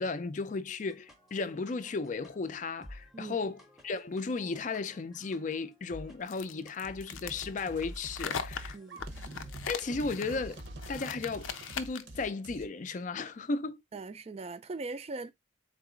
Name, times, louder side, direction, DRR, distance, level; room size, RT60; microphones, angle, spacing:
voice 1, 0.0-3.6 3.8-8.8 9.7-10.6 10.9-13.8, left 4 dB, 40° left, 0.4 m, -35 dB
sound 1, 0.8-10.5, left 1 dB, ahead, 0.7 m, -54 dB
sound 2, 6.3-12.2, left 7 dB, 90° left, 0.5 m, -40 dB
sound 3, 6.8-12.7, right 1 dB, 65° right, 0.8 m, -45 dB
voice 2, 13.9-15.3, right 3 dB, 30° right, 0.3 m, -40 dB
4.0 x 2.9 x 3.6 m
head